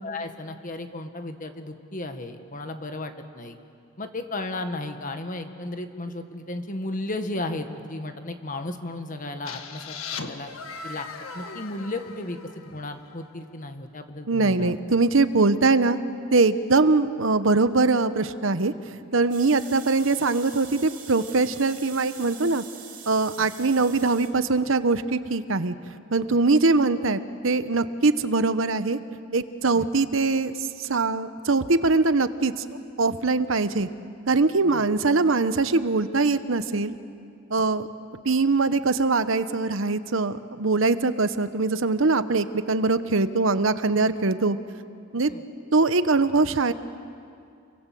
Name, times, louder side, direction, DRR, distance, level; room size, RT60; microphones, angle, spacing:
voice 1, 0.0-3.6 4.0-10.0 10.2-10.5 10.8-11.1 11.3-14.7 23.4-23.5 29.7-29.9 34.6-34.8 37.6-37.7 45.3-45.4, left 2 dB, 40° left, 7 dB, 1.6 m, -34 dB
sound 1, 9.5-13.2, left 4 dB, 90° left, 1.6 m, -38 dB
voice 2, 14.3-16.0 16.3-18.7 19.1-22.6 23.1-25.7 26.1-29.0 29.3-32.7 33.0-33.9 34.3-36.9 37.5-37.9 38.2-44.6 45.1-45.3 45.7-46.7, right 3 dB, 70° right, 12 dB, 0.9 m, -22 dB
sound 2, 19.3-24.3, right 8 dB, 40° right, 3.4 m, -44 dB
29.0 x 23.0 x 7.7 m, 2.4 s
head